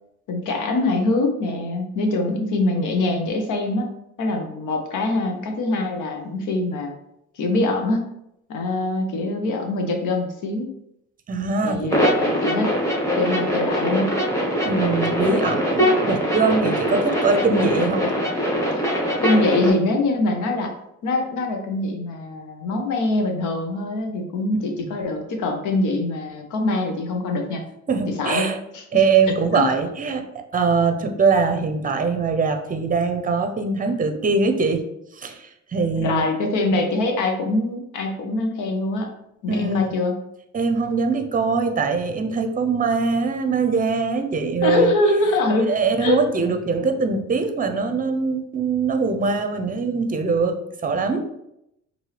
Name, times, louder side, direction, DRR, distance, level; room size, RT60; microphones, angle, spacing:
voice 1, 0.3-3.9 4.2-6.9 7.4-8.1 8.5-10.7 11.6-12.7 13.2-14.1 18.9-20.7 21.0-27.6 28.2-29.0 29.5-29.6 36.0-39.1 39.4-40.1 44.6-45.7 46.0-46.2, left 2 dB, 80° left, 3 dB, 0.9 m, -23 dB
voice 2, 11.3-11.9 14.6-18.1 24.8-24.9 27.9-28.6 28.9-30.2 30.5-34.8 35.1-36.3 39.5-39.9 40.5-44.9 45.7-51.2, right 4 dB, 30° right, 6 dB, 0.6 m, -22 dB
sound 1, 11.9-19.7, equal, 10° left, 1.2 m, -22 dB
4.6 x 2.7 x 3.2 m, 0.80 s
cardioid pair, 90°, 30 cm